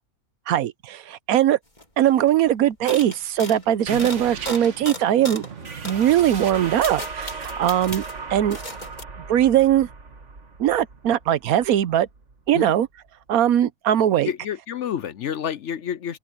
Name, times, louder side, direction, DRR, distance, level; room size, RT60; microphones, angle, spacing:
voice 1, 0.5-1.6 2.0-5.5 5.8-8.0 8.3-8.6 9.3-9.9 10.6-12.1 12.5-12.9 13.3-14.3, right 11 dB, 80° right, 1.2 m, -20 dB
sound 1, 1.8-2.4 2.9-5.5 5.8-6.0 6.5-8.2 8.5-9.0, left 1 dB, 30° left, 3.9 m, -36 dB
sound 2, 3.9-13.1, right 4 dB, 55° right, 2.1 m, -37 dB
voice 2, 14.2-16.2, left 9 dB, 60° left, 0.9 m, -29 dB
open air
omnidirectional pair, 1.5 m